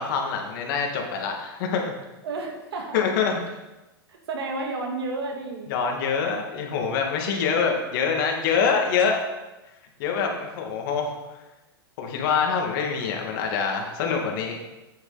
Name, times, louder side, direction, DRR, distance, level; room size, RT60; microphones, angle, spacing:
voice 1, 0.0-1.9 2.9-3.3 5.7-9.2 10.0-11.1 12.0-14.6, left 6 dB, 55° left, 2 dB, 2.1 m, -25 dB
voice 2, 2.2-3.1 4.1-5.7, right 3 dB, 80° right, 2 dB, 2.1 m, -31 dB
8.5 x 7.9 x 4.1 m, 1.0 s
hypercardioid pair, 120°, 13 cm